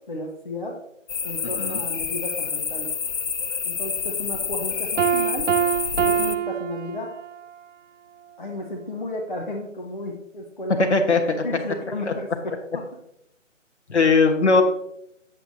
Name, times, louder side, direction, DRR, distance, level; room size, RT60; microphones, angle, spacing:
voice 1, 0.1-0.8 1.2-2.9 3.6-5.5 6.0-7.1 8.4-10.9 11.4-12.8 14.0-14.1, left 1 dB, 40° left, 0 dB, 0.9 m, -33 dB
sound 1, 1.1-6.4, left 6 dB, 75° left, 0.7 m, -28 dB
voice 2, 1.4-1.8 10.9-11.4 12.1-12.2 13.9-14.6, left 4 dB, 60° left, 5 dB, 1.3 m, -19 dB
Piano, 5.0-7.5, right 9 dB, 70° right, 0.5 m, -24 dB
8.0 x 7.9 x 2.7 m, 0.77 s
figure-of-eight pair, 165°, 38 cm